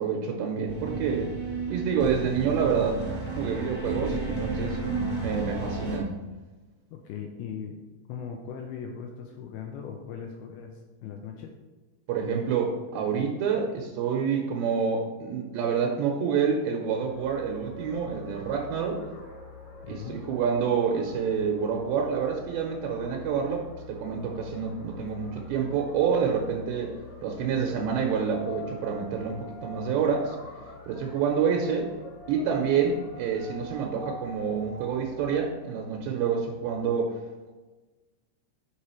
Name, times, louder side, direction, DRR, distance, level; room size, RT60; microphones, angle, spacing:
voice 1, 0.0-1.4 1.7-3.0 3.3-4.8 5.2-6.2 12.1-19.0 19.9-26.9 27.2-30.4 30.9-31.9 32.3-37.1, right 6 dB, 80° right, 1 dB, 2.8 m, -28 dB
sound 1, 0.7-6.0, right 3 dB, 40° right, 0.9 m, -32 dB
voice 2, 6.9-7.8 8.1-11.5 19.8-20.2, left 7 dB, 85° left, 3 dB, 2.3 m, -39 dB
sound 2, 17.0-35.5, left 3 dB, 60° left, 2.3 m, -44 dB
6.8 x 4.9 x 4.4 m, 1.2 s
omnidirectional pair, 5.1 m